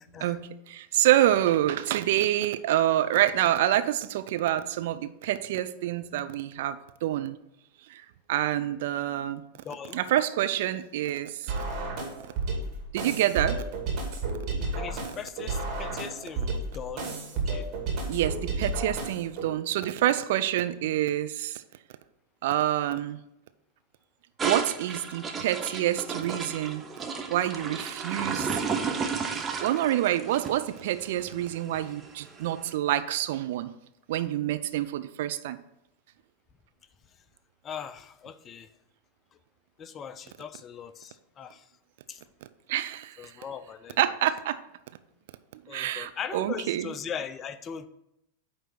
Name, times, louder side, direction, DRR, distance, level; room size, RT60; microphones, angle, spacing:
voice 1, 0.2-7.4 7.9-8.0 8.3-9.4 9.9-11.5 12.9-13.6 18.1-21.6 22.4-23.2 24.4-26.8 27.3-28.6 29.6-33.7 34.1-35.6 42.7-43.2 44.0-44.6 45.5-46.9, right 13 dB, 55° right, 11 dB, 0.4 m, -27 dB
voice 2, 9.6-10.0 14.7-17.1 17.5-17.7 37.6-38.7 39.8-41.6 42.1-42.2 43.2-44.0 45.7-47.9, left 7 dB, 25° left, 12 dB, 0.4 m, -39 dB
sound 1, 11.5-19.5, right 3 dB, 35° right, 2.2 m, -32 dB
sound 2, 24.4-32.6, right 5 dB, 20° right, 0.8 m, -33 dB
9.2 x 3.3 x 6.0 m, 0.84 s
figure-of-eight pair, 90°, 0 cm